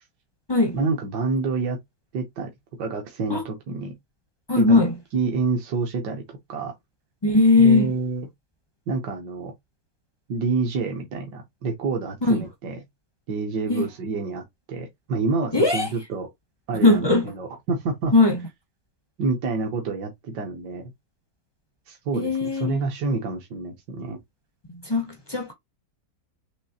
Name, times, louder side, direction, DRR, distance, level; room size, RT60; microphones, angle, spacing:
voice 1, 0.7-1.8 2.1-2.5 2.8-3.9 4.6-4.8 5.1-6.7 7.6-8.2 8.9-9.5 10.3-12.7 13.3-16.3 16.7-17.1 17.4-18.1 19.2-20.9 21.9-24.2, right 4 dB, 75° right, 1.5 m, -28 dB
voice 2, 4.5-4.9 7.2-7.9 12.2-12.4 13.7-13.9 15.5-15.9 16.8-17.3 18.1-18.4 22.1-22.9 24.7-25.5, left 3 dB, 40° left, 0.3 m, -19 dB
5.3 x 3.2 x 2.7 m
omnidirectional pair, 1.9 m